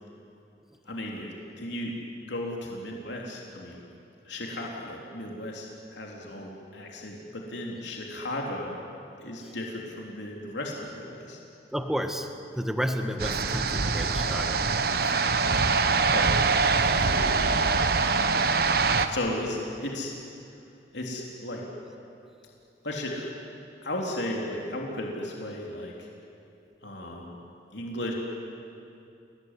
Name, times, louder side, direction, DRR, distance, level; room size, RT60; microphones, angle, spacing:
voice 1, 0.8-2.0 2.3-3.8 4.2-8.8 9.2-11.4 16.1-16.3 16.8-18.5 19.1-20.1 20.9-21.7 22.8-23.3 23.8-26.1 26.8-27.4 27.7-28.1, left 1 dB, 75° left, -1 dB, 3.4 m, -35 dB
voice 2, 11.7-12.3 12.6-14.6, equal, ahead, 6 dB, 1.6 m, -31 dB
sound 1, 13.2-19.1, right 4 dB, 55° right, 1.3 m, -24 dB
29.5 x 18.5 x 9.8 m, 2.7 s
head